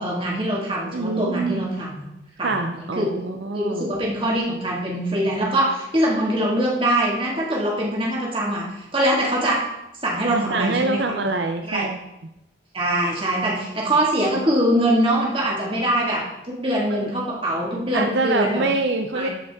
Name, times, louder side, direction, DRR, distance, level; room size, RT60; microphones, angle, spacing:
voice 1, 0.0-2.1 2.4-3.2 3.5-9.7 10.0-11.0 11.7-11.9 12.7-18.6 19.1-19.3, right 1 dB, 30° right, -3 dB, 1.9 m, -23 dB
voice 2, 0.9-1.6 2.4-3.9 10.2-12.0 13.9-14.0 16.9-17.1 17.9-19.3, right 3 dB, 70° right, 6 dB, 0.5 m, -25 dB
13.5 x 5.3 x 3.6 m, 0.89 s
head